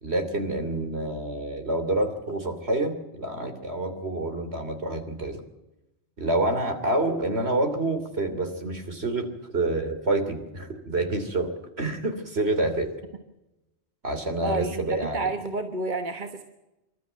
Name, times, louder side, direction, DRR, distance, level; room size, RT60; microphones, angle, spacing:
voice 1, 0.0-5.4 6.2-9.3 9.5-11.5 11.8-12.9 14.0-15.2, right 2 dB, 60° right, 7 dB, 3.2 m, -27 dB
voice 2, 14.4-16.4, right 2 dB, 40° right, 6 dB, 1.5 m, -30 dB
26.5 x 13.0 x 9.2 m, 0.96 s
omnidirectional pair, 1.2 m